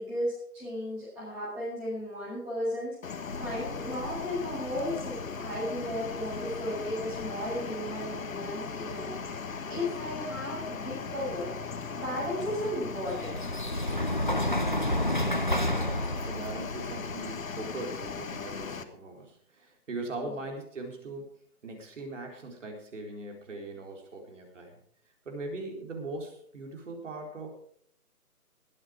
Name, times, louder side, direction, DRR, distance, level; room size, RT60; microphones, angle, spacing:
voice 1, 0.0-2.9 3.4-9.1 9.7-11.5 11.9-13.4 20.2-20.3, left 1 dB, 5° right, -15 dB, 6.0 m, -34 dB
sound 1, 3.0-18.8, left 5 dB, 60° left, 1.4 m, -38 dB
sound 2, 3.3-17.7, left 1 dB, 35° left, 0.5 m, -34 dB
voice 2, 15.4-21.3 21.6-24.8 25.3-27.5, right 2 dB, 50° right, 2 dB, 4.2 m, -40 dB
21.0 x 8.7 x 5.0 m, 0.64 s
hypercardioid pair, 170°, 46 cm